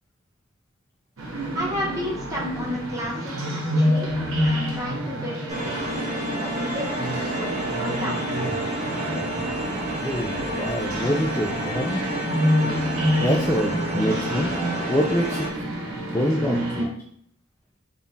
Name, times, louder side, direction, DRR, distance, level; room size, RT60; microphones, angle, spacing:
sound 1, 1.2-16.9, equal, 70° right, 1.0 m, -28 dB
voice 1, 1.5-4.1 4.4-5.7 6.3-7.1 7.4-8.3, equal, 15° right, -4 dB, 1.0 m, -32 dB
sound 2, 5.5-15.5, right 1 dB, 35° right, 0.7 m, -30 dB
voice 2, 7.3-7.7 10.0-12.0 12.6-12.8 13.2-14.5 14.9-15.7 16.0-16.9, equal, 10° left, -1 dB, 0.3 m, -26 dB
3.6 x 2.3 x 4.0 m, 0.66 s
head